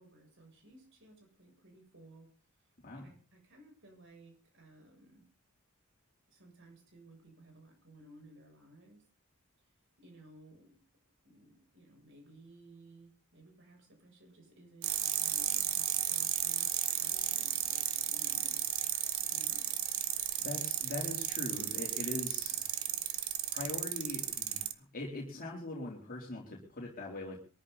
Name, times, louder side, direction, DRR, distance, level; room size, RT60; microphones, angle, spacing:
voice 1, 0.0-2.3 2.9-5.2 6.3-9.1 10.0-10.8 11.2-18.7 19.3-19.6, right 1 dB, 60° right, 2 dB, 7.7 m, -58 dB
sound 1, 14.8-24.7, right 12 dB, 85° right, 1.5 m, -34 dB
voice 2, 20.4-22.8 23.1-23.2 23.5-27.4, left 2 dB, 45° left, -2 dB, 3.8 m, -41 dB
23.0 x 14.0 x 4.2 m, 0.39 s
head